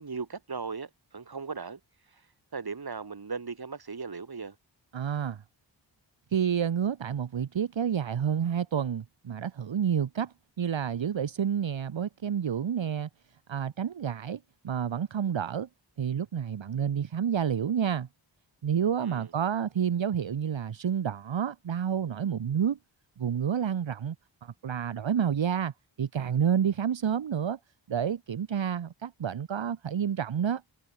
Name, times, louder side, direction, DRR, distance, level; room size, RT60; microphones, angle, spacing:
voice 1, 0.0-1.8 2.1-2.2 2.5-4.6 19.0-19.3, right 5 dB, 50° right, 2.7 m, -38 dB
voice 2, 4.9-5.4 6.3-13.1 13.5-15.7 16.0-18.1 18.6-22.8 23.2-24.1 24.4-25.7 26.0-27.6 27.9-30.6, right 8 dB, 70° right, 1.2 m, -29 dB
cardioid pair, 50°, 47 cm